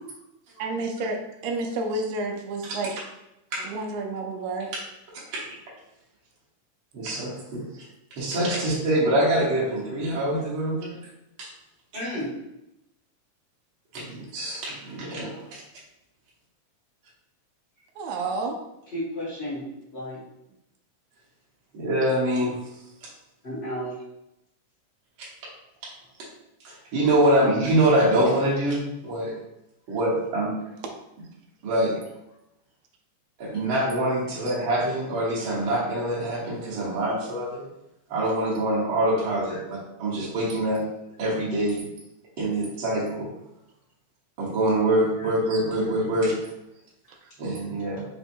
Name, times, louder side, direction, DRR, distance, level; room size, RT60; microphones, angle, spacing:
voice 1, 0.6-2.9 3.6-4.7 18.0-18.6 47.1-47.3, right 3 dB, 85° right, 2 dB, 1.5 m, -30 dB
voice 2, 5.1-5.5 6.9-7.6 8.1-11.0 11.4-11.5 13.9-15.6 21.7-22.6 23.0-23.1 25.2-25.3 25.8-25.9 26.2-26.3 26.6-29.3 29.9-30.5 31.6-31.9 33.4-37.6 38.1-40.8 41.2-41.9 42.4-43.3 44.4-46.3 47.4-48.0, right 1 dB, 55° right, -6 dB, 1.5 m, -25 dB
voice 3, 11.9-12.3 18.9-19.6 19.9-20.2 23.4-24.0 29.0-29.1 39.5-39.6, equal, 35° left, -8 dB, 1.1 m, -32 dB
5.4 x 2.2 x 4.3 m, 0.86 s
omnidirectional pair, 3.6 m